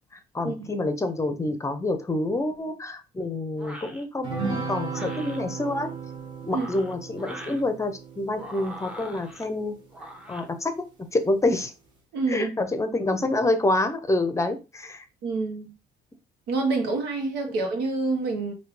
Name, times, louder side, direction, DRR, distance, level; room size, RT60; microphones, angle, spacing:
voice 1, 0.3-5.9 6.4-9.8 10.3-10.8 11.1-11.7 12.3-15.0, left 2 dB, 15° left, 0.7 m, -27 dB
sound 1, 3.6-4.0 4.8-5.4 6.4-7.6 8.3-9.4 9.9-10.5, equal, 5° right, 0.9 m, -42 dB
sound 2, 4.2-9.9, right 5 dB, 30° right, 1.8 m, -36 dB
voice 2, 12.1-12.6 15.2-15.7 16.5-18.5, right 3 dB, 85° right, 1.4 m, -27 dB
4.8 x 2.8 x 3.2 m
cardioid pair, 110°, 17 cm